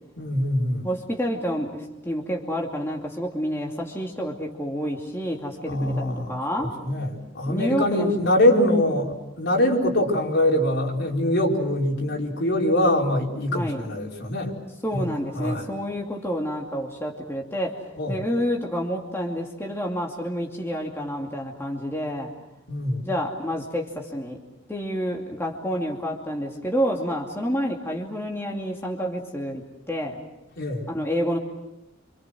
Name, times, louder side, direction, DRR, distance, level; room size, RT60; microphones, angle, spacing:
voice 1, 0.2-0.9 5.7-14.5 14.9-15.1 15.4-15.7 18.0-18.2 22.7-23.1 30.6-30.9, left 1 dB, 65° left, -1 dB, 5.2 m, -23 dB
voice 2, 0.8-6.7 7.5-8.1 13.5-13.8 14.8-17.8 18.1-22.3 23.0-24.4 24.7-30.2 30.9-31.4, equal, 15° left, 0 dB, 2.6 m, -29 dB
29.5 x 26.5 x 6.3 m, 0.89 s
head